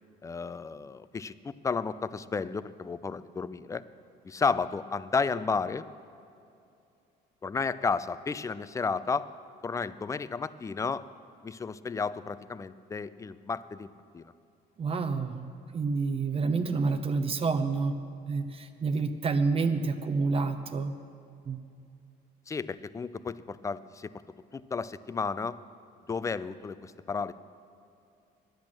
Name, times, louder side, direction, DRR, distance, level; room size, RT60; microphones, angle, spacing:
voice 1, 0.2-3.8 4.2-5.9 7.4-9.3 9.6-11.0 11.4-13.9 14.1-14.3 22.5-24.1 24.5-25.6 26.1-27.3, left 5 dB, 20° left, 16 dB, 0.4 m, -32 dB
voice 2, 14.8-15.5 15.7-18.0 18.3-20.9 21.5-21.6, right 4 dB, 35° right, 8 dB, 0.7 m, -28 dB
10.5 x 10.5 x 7.4 m, 2.6 s
cardioid pair, 110°, 17 cm